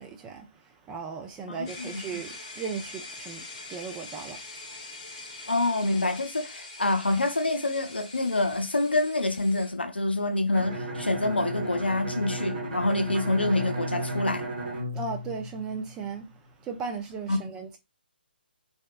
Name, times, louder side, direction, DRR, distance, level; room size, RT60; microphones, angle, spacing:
voice 1, 0.0-4.4 14.9-16.3 16.6-17.8, right 5 dB, 15° right, 0.4 m, -37 dB
voice 2, 1.5-2.0 5.5-14.5 17.3-17.4, left 2 dB, 85° left, 0.5 m, -26 dB
sound 1, 1.7-9.7, left 2 dB, 30° left, 0.8 m, -43 dB
Bowed string instrument, 10.5-16.2, right 1 dB, 50° right, 1.0 m, -34 dB
2.7 x 2.1 x 2.3 m
figure-of-eight pair, 140°, 6 cm